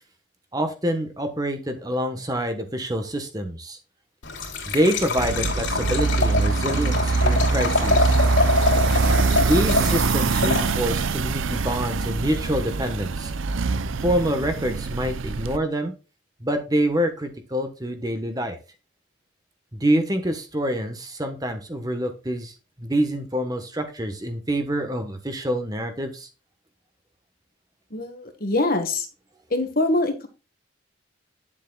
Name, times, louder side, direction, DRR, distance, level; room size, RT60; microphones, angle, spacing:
voice 1, 0.5-3.8 4.7-8.2 9.4-13.3 14.0-15.9 16.4-18.6 19.7-26.3, right 1 dB, 20° right, 6 dB, 1.2 m, -26 dB
Liquid, 4.2-11.1, left 3 dB, 70° left, 3.2 m, -25 dB
sound 1, 5.2-15.6, right 4 dB, 80° right, 0.6 m, -23 dB
voice 2, 27.9-29.1 29.5-30.3, left 2 dB, 45° left, 7 dB, 1.6 m, -24 dB
10.5 x 7.4 x 2.3 m, 0.31 s
head